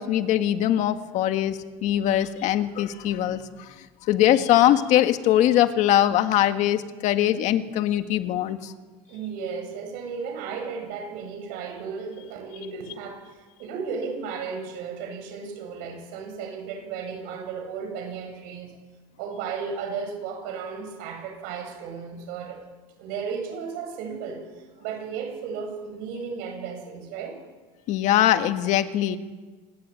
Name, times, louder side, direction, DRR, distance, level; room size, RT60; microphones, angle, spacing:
voice 1, 0.0-3.7 4.1-8.7 27.9-29.2, left 12 dB, 45° left, 9 dB, 1.7 m, -22 dB
voice 2, 9.1-18.7 19.2-22.6 23.0-27.4, right 6 dB, 65° right, 5 dB, 8.0 m, -34 dB
27.0 x 20.5 x 9.2 m, 1.3 s
cardioid pair, 170°, 17 cm